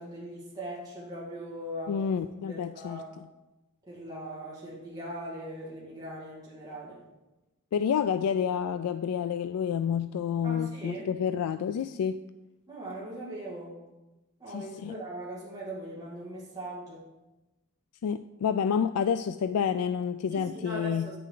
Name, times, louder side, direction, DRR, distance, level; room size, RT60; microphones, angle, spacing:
voice 1, 0.0-2.0 2.5-3.1 3.9-7.0 10.4-11.1 12.7-13.8 14.4-17.0 20.3-21.2, right 1 dB, 15° right, -8 dB, 2.0 m, -40 dB
voice 2, 1.9-3.3 7.7-12.2 14.5-14.9 18.0-21.1, left 7 dB, 85° left, 10 dB, 0.3 m, -29 dB
9.4 x 6.7 x 3.8 m, 1.1 s
head